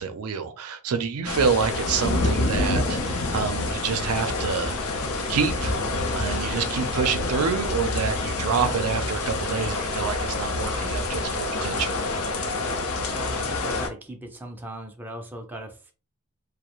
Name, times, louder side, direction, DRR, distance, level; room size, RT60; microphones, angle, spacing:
voice 1, 0.0-5.7 6.1-12.0, right 6 dB, 90° right, 0.4 m, -27 dB
sound 1, 1.3-13.9, left 2 dB, 70° left, 0.5 m, -27 dB
voice 2, 13.1-15.9, right 1 dB, 10° right, 0.4 m, -38 dB
2.4 x 2.0 x 2.9 m
head